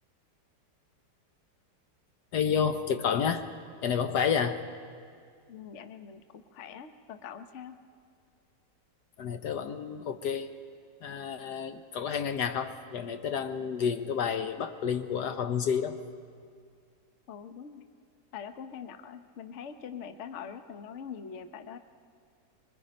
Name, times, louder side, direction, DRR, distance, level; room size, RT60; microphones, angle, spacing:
voice 1, 2.3-3.4 3.8-4.6 9.2-10.5 11.0-16.0, left 7 dB, 65° left, 8 dB, 1.3 m, -30 dB
voice 2, 5.5-7.8 17.3-17.8 18.3-21.8, left 7 dB, 50° left, 8 dB, 1.0 m, -43 dB
25.0 x 23.5 x 5.2 m, 2.2 s
omnidirectional pair, 2.0 m